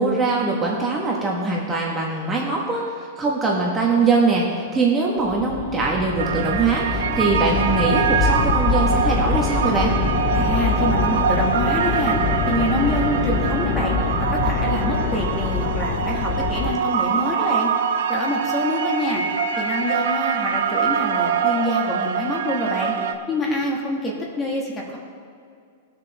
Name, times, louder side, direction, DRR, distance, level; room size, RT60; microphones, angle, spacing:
voice 1, 0.0-2.9 3.2-4.4 4.7-9.9, right 3 dB, 15° right, -3 dB, 1.3 m, -22 dB
sound 1, 5.2-16.7, left 4 dB, 40° left, 1.5 m, -24 dB
sound 2, 6.2-23.1, right 7 dB, 75° right, 0.8 m, -24 dB
voice 2, 10.3-12.2 12.5-13.9 14.3-17.7 18.1-19.2 19.6-22.9 23.3-25.0, left 1 dB, 15° left, -1 dB, 1.8 m, -26 dB
20.0 x 6.7 x 3.5 m, 2.3 s
supercardioid pair, 150°, 0 cm